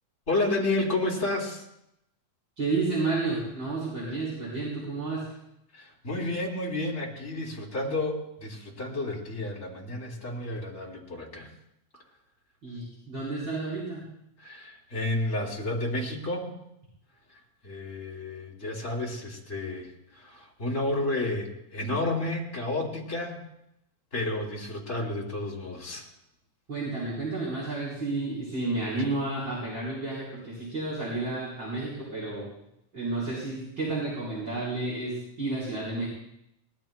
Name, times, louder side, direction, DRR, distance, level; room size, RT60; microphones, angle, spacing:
voice 1, 0.3-1.6 5.7-11.5 14.4-16.5 17.6-23.4 24.1-26.1, left 2 dB, 25° left, -3 dB, 3.4 m, -31 dB
voice 2, 2.6-5.3 12.6-14.0 26.7-32.5 32.9-36.1, right 3 dB, 35° right, -7 dB, 4.7 m, -31 dB
24.0 x 19.5 x 2.3 m, 0.81 s
omnidirectional pair, 3.5 m